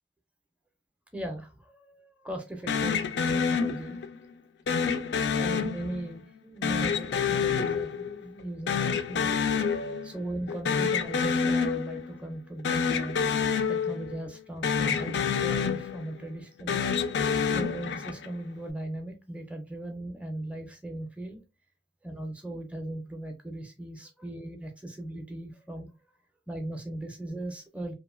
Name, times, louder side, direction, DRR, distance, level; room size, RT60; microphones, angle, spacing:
voice 1, 1.1-4.0 5.4-9.3 10.0-13.3 13.7-16.8 17.4-21.4 22.0-25.9 26.5-27.9, right 1 dB, 5° right, 4 dB, 0.4 m, -38 dB
sound 1, 2.7-4.2 4.7-6.2 6.6-8.4 8.7-10.2 10.5-12.2 12.6-14.4 14.6-16.2 16.6-18.3, left 6 dB, 65° left, 0.3 m, -28 dB
2.8 x 2.4 x 2.3 m, 0.26 s
head